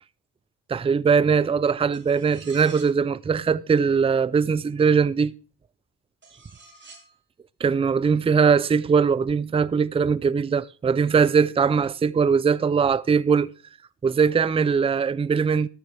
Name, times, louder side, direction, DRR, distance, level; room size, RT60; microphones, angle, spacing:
voice 1, 0.7-5.3 7.6-13.5 14.0-15.7, right 6 dB, 20° right, 0.5 m, -21 dB
sound 1, 1.9-3.0 4.8-4.9 6.2-7.1, right 3 dB, 40° right, 4.5 m, -48 dB
13.0 x 12.0 x 3.4 m
cardioid pair, 90°, 30 cm